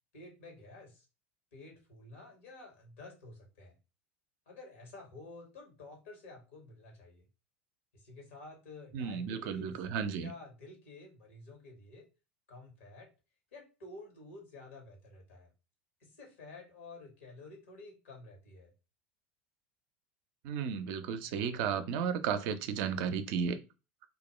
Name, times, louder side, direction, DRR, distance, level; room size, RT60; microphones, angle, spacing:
voice 1, 0.1-1.1 1.5-3.8 4.5-7.3 7.9-9.8 10.1-12.1 12.5-13.1 13.5-15.5 16.0-18.7, left 2 dB, 75° left, 1.0 m, -51 dB
voice 2, 8.9-10.3 20.4-23.6, right 7 dB, 55° right, 0.4 m, -34 dB
2.3 x 2.1 x 3.0 m
hypercardioid pair, 80°, 7 cm